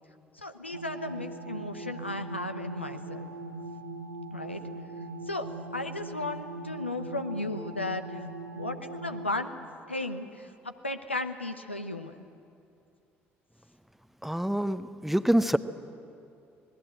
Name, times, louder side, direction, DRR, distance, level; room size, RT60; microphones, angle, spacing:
voice 1, 0.3-3.2 4.3-4.6 5.3-5.5 5.7-8.2 8.5-9.6 9.9-12.1, left 2 dB, 90° left, 7 dB, 0.8 m, -35 dB
sound 1, 0.7-9.3, right 2 dB, 75° right, 1.3 m, -40 dB
voice 2, 14.2-15.6, right 1 dB, 5° right, 13 dB, 0.8 m, -26 dB
26.5 x 19.0 x 7.9 m, 2.6 s
figure-of-eight pair, 50°, 6 cm